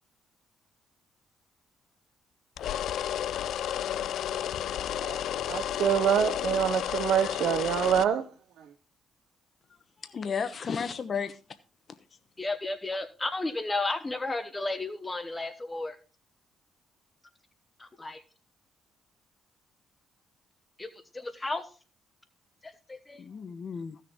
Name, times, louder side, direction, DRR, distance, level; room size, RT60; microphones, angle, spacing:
sound 1, 2.6-8.1, left 11 dB, 75° left, 0.4 m, -32 dB
voice 1, 5.0-8.7, right 9 dB, 75° right, 0.8 m, -27 dB
voice 2, 10.0-11.4 23.2-24.0, left 6 dB, 45° left, 1.0 m, -33 dB
voice 3, 12.4-16.0 17.8-18.2 20.8-20.9 21.1-21.6 22.6-23.2, left 2 dB, 20° left, 1.0 m, -33 dB
15.0 x 6.6 x 3.7 m
cardioid pair, 90°, 0 cm